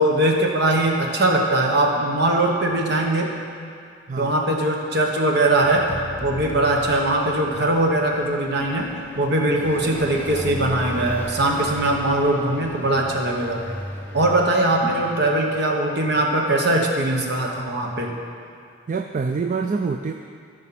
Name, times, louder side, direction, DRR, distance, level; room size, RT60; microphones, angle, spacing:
voice 1, 0.0-3.3 4.2-5.9 6.2-8.9 9.1-13.6 14.1-18.1, right 1 dB, 55° right, 0 dB, 1.3 m, -21 dB
sound 1, 5.6-7.9, right 1 dB, 75° right, 1.0 m, -36 dB
Car passing by, 6.2-16.6, equal, 10° left, 0.7 m, -37 dB
voice 2, 18.9-20.1, right 4 dB, 40° right, 6 dB, 0.3 m, -25 dB
13.5 x 5.4 x 5.9 m, 2.2 s
head